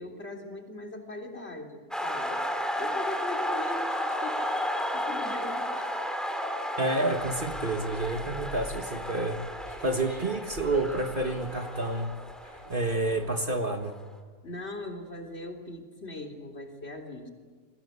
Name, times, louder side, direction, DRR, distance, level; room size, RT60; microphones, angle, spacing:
voice 1, 0.0-2.4 2.8-4.5 4.9-5.9 14.4-17.3, left 2 dB, 45° left, 3 dB, 3.7 m, -40 dB
sound 1, 1.9-13.6, equal, ahead, 3.2 m, -33 dB
voice 2, 6.8-9.4 9.8-12.1 12.7-14.0, right 2 dB, 40° right, 5 dB, 1.7 m, -29 dB
sound 2, 7.1-13.6, equal, 15° left, 3.9 m, -43 dB
30.0 x 23.0 x 8.2 m, 1.5 s
omnidirectional pair, 1.5 m